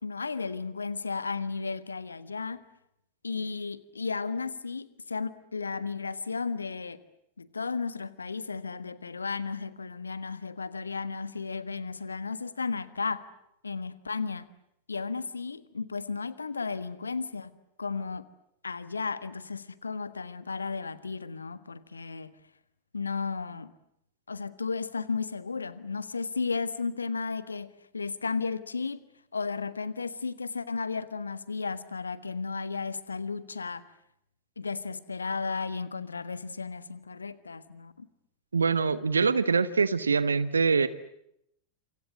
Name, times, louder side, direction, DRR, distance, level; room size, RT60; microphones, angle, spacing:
voice 1, 0.0-2.6 3.2-7.0 7.4-13.2 13.6-14.5 14.9-17.5 17.8-18.2 18.6-22.3 22.9-23.7 24.3-29.0 29.3-33.8 34.6-38.1, left 4 dB, 75° left, 15 dB, 1.5 m, -34 dB
voice 2, 38.5-40.9, right 5 dB, 75° right, 16 dB, 1.1 m, -24 dB
28.0 x 27.0 x 7.7 m, 0.76 s
figure-of-eight pair, 90°, 0 cm